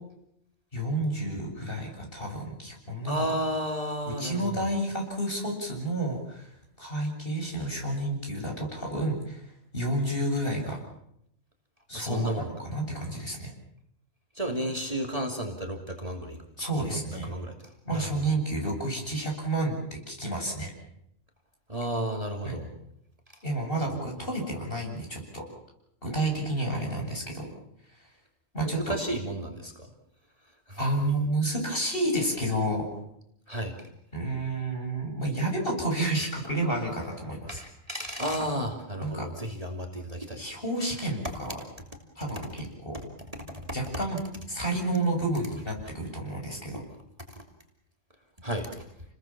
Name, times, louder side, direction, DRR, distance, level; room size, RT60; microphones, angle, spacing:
voice 1, 0.7-3.2 4.2-6.5 6.8-9.4 9.7-10.8 11.9-13.5 16.6-17.3 17.8-19.8 20.1-20.7 22.4-22.6 23.4-25.4 26.0-27.5 28.5-28.9 30.8-32.9 34.1-37.6 39.0-39.3 40.4-41.6 42.2-43.0 43.7-44.2 44.5-46.8, right 1 dB, 45° left, 1 dB, 7.8 m, -30 dB
voice 2, 3.1-4.6 11.9-12.5 14.3-16.4 16.9-17.6 17.9-18.1 21.7-22.7 28.6-29.9 30.7-30.8 33.5-33.8 37.5-40.4 43.5-43.7 48.4-48.8, equal, 25° right, 2 dB, 3.0 m, -32 dB
29.5 x 20.5 x 7.4 m, 0.78 s
omnidirectional pair, 1.4 m